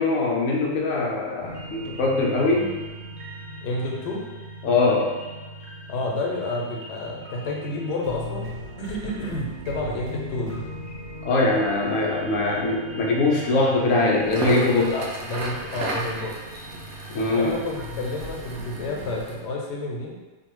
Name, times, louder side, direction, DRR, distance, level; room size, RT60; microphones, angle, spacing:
voice 1, 0.0-2.8 4.6-5.1 11.2-15.0 17.1-17.6, left 3 dB, 65° left, -2 dB, 0.9 m, -22 dB
sound 1, 1.4-19.1, equal, 65° right, 1.2 m, -39 dB
voice 2, 3.6-4.2 5.9-10.7 14.8-16.4 17.4-20.2, left 2 dB, 90° left, -1 dB, 1.2 m, -30 dB
Crackle, 14.2-19.4, right 2 dB, 85° right, 0.6 m, -35 dB
2.6 x 2.4 x 3.0 m, 1.2 s
omnidirectional pair, 1.7 m